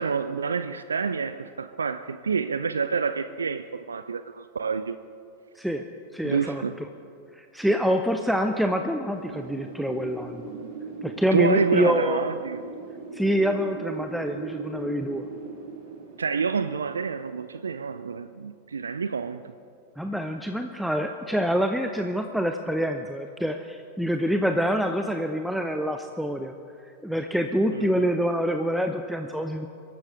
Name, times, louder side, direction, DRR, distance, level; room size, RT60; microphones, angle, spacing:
voice 1, 0.0-5.0 6.2-6.8 11.3-12.6 16.2-19.5 27.7-27.9, right 5 dB, 70° right, 12 dB, 0.4 m, -28 dB
voice 2, 6.1-6.6 7.3-10.5 11.0-12.2 13.1-15.3 20.0-26.5 26.8-29.7, equal, ahead, 6 dB, 0.6 m, -26 dB
Wind, 9.1-17.8, right 4 dB, 50° right, 2.5 m, -39 dB
24.0 x 13.0 x 3.7 m, 2.5 s
figure-of-eight pair, 90°, 0 cm